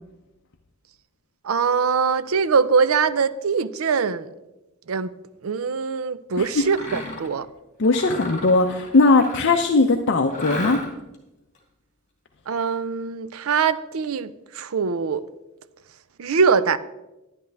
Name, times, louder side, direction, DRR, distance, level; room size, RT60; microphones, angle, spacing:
voice 1, 1.4-4.3 4.9-5.2 5.4-7.5 12.5-15.2 16.2-16.8, right 5 dB, 90° right, 15 dB, 0.5 m, -22 dB
voice 2, 6.4-6.7 7.8-10.8, left 3 dB, 60° left, 4 dB, 0.6 m, -19 dB
Mechanisms, 6.6-7.3 7.8-9.7 10.3-11.1, left 2 dB, 35° left, 2.3 m, -34 dB
11.0 x 10.5 x 3.4 m, 0.98 s
head